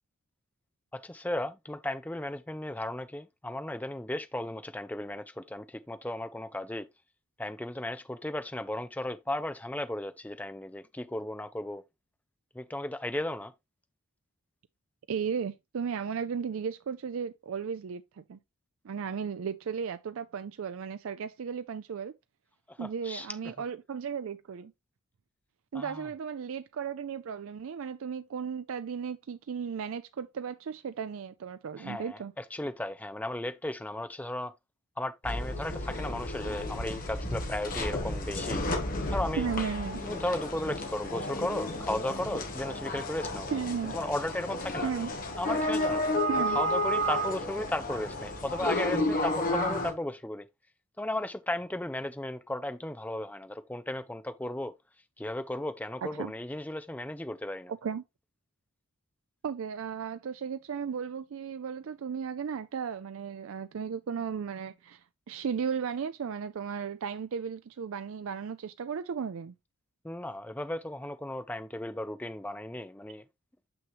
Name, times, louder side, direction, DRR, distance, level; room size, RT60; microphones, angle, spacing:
voice 1, 0.9-6.9 7.4-11.8 12.5-13.5 22.7-23.5 25.7-26.1 31.8-34.5 35.0-38.6 39.1-39.5 40.0-43.5 43.9-44.9 45.4-46.0 46.5-50.5 51.0-54.7 55.2-57.7 70.0-73.2, left 1 dB, 5° left, 0.4 m, -35 dB
voice 2, 15.1-18.4 18.8-22.1 22.8-24.7 25.7-32.3 39.4-40.0 43.5-44.0 44.8-45.1 46.3-46.6 56.0-56.3 57.7-58.0 59.4-69.5, right 6 dB, 65° right, 0.4 m, -35 dB
sound 1, 35.2-49.9, left 1 dB, 40° left, 1.4 m, -32 dB
6.2 x 6.1 x 2.9 m
head